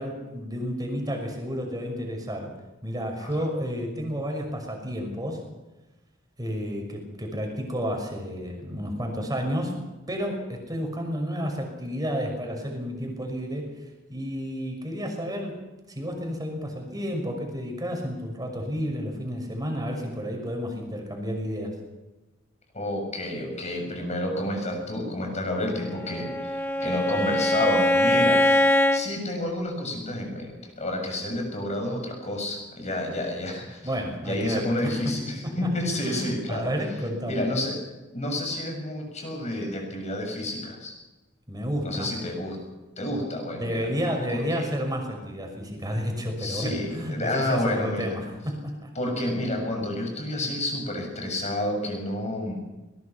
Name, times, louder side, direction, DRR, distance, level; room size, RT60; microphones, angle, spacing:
voice 1, 0.0-2.5 2.8-5.4 6.4-9.8 10.1-15.6 15.9-21.7 33.8-35.2 35.4-35.7 36.0-37.4 41.5-42.1 43.5-48.9, equal, 20° right, 2 dB, 6.0 m, -31 dB
voice 2, 22.7-28.4 28.9-33.8 34.2-36.7 37.2-37.8 38.1-40.9 41.8-42.6 43.0-43.9 44.3-44.7 46.4-48.2 49.0-52.6, left 1 dB, 35° left, 2 dB, 7.0 m, -30 dB
Bowed string instrument, 25.9-29.1, left 1 dB, 10° left, 1.4 m, -22 dB
22.0 x 20.0 x 6.0 m, 1.1 s
head